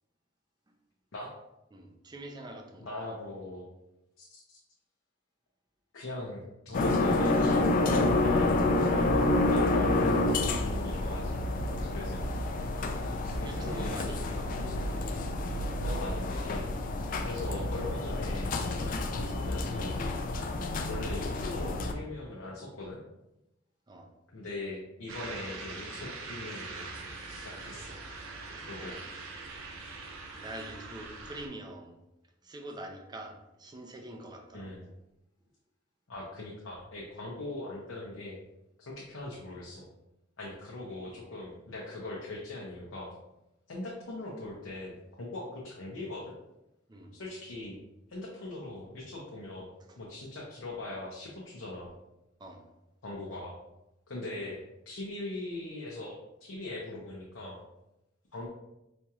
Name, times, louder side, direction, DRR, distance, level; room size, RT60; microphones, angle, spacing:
voice 1, 1.7-2.9 13.0-13.1 13.4-14.5 17.5-17.6 23.9-24.1 28.7-29.0 30.3-32.0 32.4-34.9 46.9-47.1 49.9-50.0 52.4-52.7, right 1 dB, 20° right, 3 dB, 0.4 m, -44 dB
voice 2, 2.8-3.7 4.2-4.6 5.9-8.5 8.8-9.9 10.3-11.4 11.8-12.2 13.2-14.4 14.7-15.2 15.8-16.7 17.2-18.5 19.0-20.0 20.8-23.0 24.3-26.9 27.3-28.0 28.6-29.0 34.5-34.8 36.1-38.4 38.8-39.8 40.4-43.1 43.7-46.3 47.1-47.8 48.1-49.7 50.0-51.9 53.0-53.5 54.1-54.6 54.9-57.6 58.3-58.5, left 2 dB, 80° left, -4 dB, 0.6 m, -40 dB
sound 1, 6.7-21.9, left 2 dB, 45° left, 0.3 m, -29 dB
sound 2, 25.1-31.5, right 3 dB, 85° right, 0.5 m, -42 dB
4.2 x 2.9 x 2.3 m, 0.91 s
head